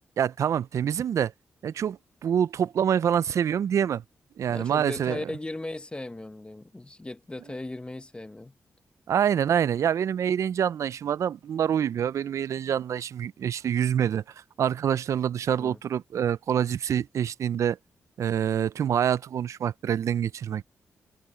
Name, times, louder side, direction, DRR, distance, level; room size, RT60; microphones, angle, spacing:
voice 1, 0.2-1.3 1.6-4.0 4.4-5.2 9.1-14.2 14.6-17.8 18.2-20.6, right 9 dB, 75° right, 0.5 m, -26 dB
voice 2, 4.5-8.5 15.5-15.8, left 2 dB, 20° left, 1.0 m, -37 dB
cardioid pair, 65°, 5 cm